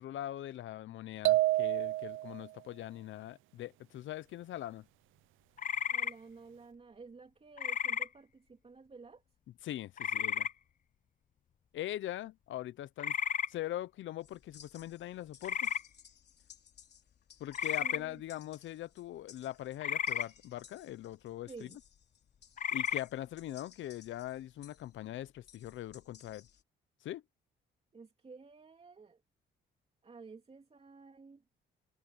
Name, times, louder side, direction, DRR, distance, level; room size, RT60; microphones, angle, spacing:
voice 1, 0.0-4.9 9.6-10.5 11.7-13.1 13.5-15.7 17.4-21.7 22.7-26.5 27.0-27.2, left 13 dB, 75° left, 0.8 m, -42 dB
sound 1, 1.2-2.4, right 17 dB, 85° right, 0.5 m, -28 dB
sound 2, 5.6-6.1 7.6-8.1 10.0-10.5 13.0-13.5 15.4-15.8 17.5-18.0 19.8-20.3 22.6-23.0, left 8 dB, 40° left, 0.5 m, -33 dB
voice 2, 5.9-9.2 17.8-18.2 21.5-21.8 27.9-29.2 30.0-31.4, right 4 dB, 30° right, 3.2 m, -52 dB
sound 3, 14.2-26.6, left 8 dB, 55° left, 3.4 m, -60 dB
cardioid pair, 90°, 20 cm